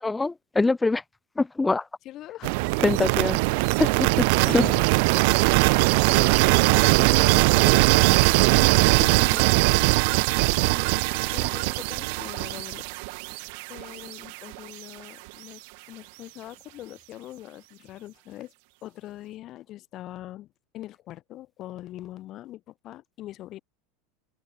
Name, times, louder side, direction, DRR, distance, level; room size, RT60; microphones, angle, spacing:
voice 1, 0.0-1.0 1.4-1.9 2.8-3.4 3.8-4.3 4.5-4.6 10.7-10.8, left 3 dB, 10° left, 2.0 m, -24 dB
voice 2, 2.1-3.6 4.4-4.8 5.7-7.9 8.3-9.5 10.9-13.0 13.7-15.6 15.9-18.5 18.8-20.5 20.7-23.6, left 14 dB, 40° left, 3.3 m, -42 dB
sound 1, 2.4-14.4, right 31 dB, 60° right, 0.4 m, -21 dB
supercardioid pair, 150°, 0 cm